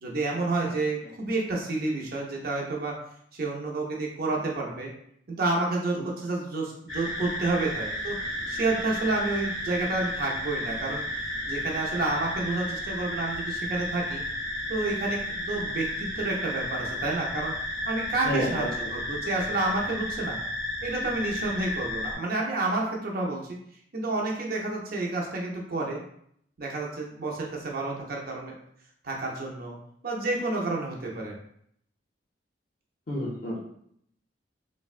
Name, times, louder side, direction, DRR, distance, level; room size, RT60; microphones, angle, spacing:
voice 1, 0.0-2.9 3.3-4.9 5.3-8.2 8.5-14.2 14.7-17.5 17.9-20.4 20.8-23.6 23.9-26.0 26.6-28.5 29.0-29.8 30.0-31.3, right 2 dB, 50° right, -1 dB, 0.6 m, -30 dB
sound 1, 6.9-22.2, left 1 dB, ahead, 0.8 m, -33 dB
voice 2, 18.2-18.9 33.1-33.7, equal, 45° left, -4 dB, 0.5 m, -31 dB
3.3 x 2.1 x 2.4 m, 0.69 s
head